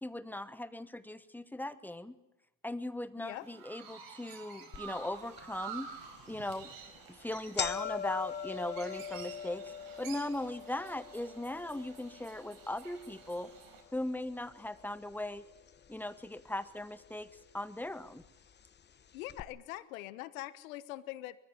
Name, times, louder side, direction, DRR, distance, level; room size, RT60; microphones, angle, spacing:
voice 1, 0.0-2.2 2.6-5.9 6.3-6.7 7.1-13.5 13.9-15.4 15.9-17.3 17.5-18.2, left 1 dB, 5° left, 14 dB, 1.1 m, -39 dB
Chirp tweet, 3.2-13.8, right 7 dB, 55° right, 4.8 m, -50 dB
sound 1, 4.7-4.8 5.4-5.5 6.3-6.5 6.8-6.9 7.2-15.4 15.7-16.4 17.2-17.3 18.3-18.4 18.6-18.7 19.3-19.4, left 7 dB, 25° left, 1.2 m, -42 dB
voice 2, 19.1-21.4, left 16 dB, 85° left, 16 dB, 1.3 m, -43 dB
22.0 x 14.5 x 9.6 m, 0.97 s
supercardioid pair, 100°, 40 cm